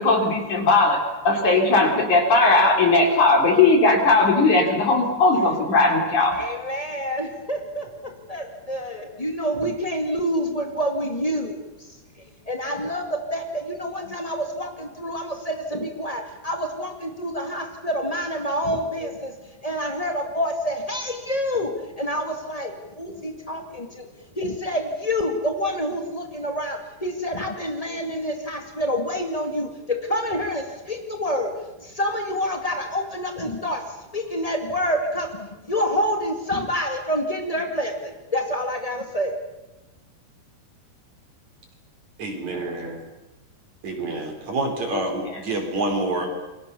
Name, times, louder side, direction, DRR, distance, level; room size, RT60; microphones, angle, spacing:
voice 1, 0.0-6.4 44.9-45.4, left 3 dB, 45° left, 3 dB, 4.8 m, -18 dB
voice 2, 6.3-24.1 24.3-31.5 31.8-39.4, equal, 65° left, 4 dB, 0.3 m, -28 dB
voice 3, 42.2-43.0 43.8-46.3, right 2 dB, 45° right, 4 dB, 5.2 m, -27 dB
29.0 x 23.0 x 7.0 m, 1.0 s
omnidirectional pair, 4.9 m